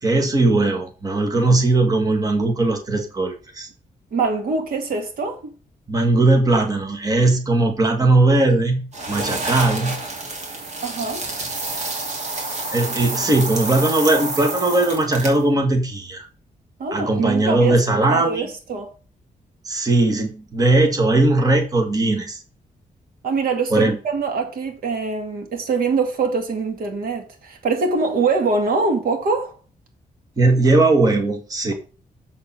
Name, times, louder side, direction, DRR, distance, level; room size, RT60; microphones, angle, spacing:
voice 1, 0.0-3.7 5.9-10.0 12.7-16.3 16.9-18.5 19.6-22.4 23.7-24.0 30.4-31.7, right 2 dB, 25° right, 1.6 m, -19 dB
voice 2, 4.1-5.5 10.8-11.2 16.8-17.8 18.1-18.9 23.2-29.6, right 4 dB, 85° right, 2.2 m, -23 dB
sound 1, 8.9-15.5, right 2 dB, 50° right, 2.7 m, -29 dB
7.4 x 6.6 x 4.3 m
wide cardioid pair, 150°, 15 cm